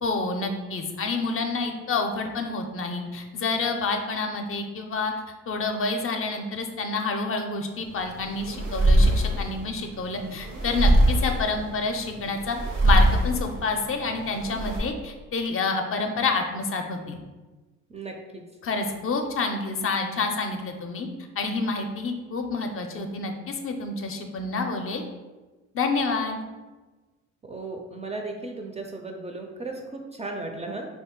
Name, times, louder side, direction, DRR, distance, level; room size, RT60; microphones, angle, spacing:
voice 1, 0.0-5.1 5.5-12.6 12.8-17.2 18.6-21.1 21.4-25.0 25.7-26.4, left 3 dB, 45° left, 4 dB, 0.5 m, -28 dB
sound 1, 7.9-14.8, right 1 dB, 90° right, 0.9 m, -23 dB
voice 2, 17.9-18.4 27.5-30.9, right 2 dB, 25° right, 2 dB, 0.3 m, -35 dB
2.7 x 2.5 x 3.6 m, 1.2 s
cardioid pair, 90°, 30 cm